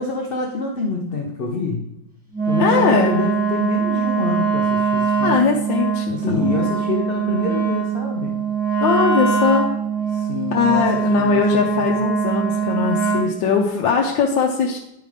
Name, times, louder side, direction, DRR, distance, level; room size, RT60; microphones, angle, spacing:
voice 1, 0.0-1.9 2.5-5.4 6.1-8.4 10.1-10.9 11.2-12.0, left 3 dB, 50° left, 0 dB, 0.7 m, -27 dB
Wind instrument woodwind instrument, 2.3-13.4, right 6 dB, 5° right, 1.8 m, -22 dB
voice 2, 2.6-3.2 5.2-6.7 8.8-9.7 10.5-14.8, left 6 dB, 80° left, 0 dB, 1.4 m, -20 dB
10.5 x 5.1 x 3.3 m, 0.87 s
omnidirectional pair, 2.0 m